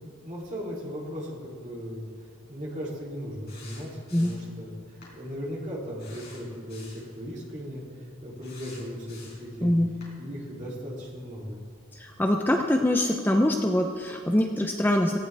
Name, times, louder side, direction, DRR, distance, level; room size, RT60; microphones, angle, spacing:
voice 1, 0.0-9.8 10.2-11.6, equal, 35° right, -5 dB, 3.2 m, -37 dB
sound 1, 3.5-4.5 5.0-5.2 6.0-7.1 8.4-9.5 10.0-10.1, left 4 dB, 50° left, 4.6 m, -49 dB
voice 2, 9.6-9.9 11.9-15.2, left 1 dB, 10° left, 2 dB, 0.6 m, -24 dB
18.0 x 15.5 x 3.5 m, 2.1 s
head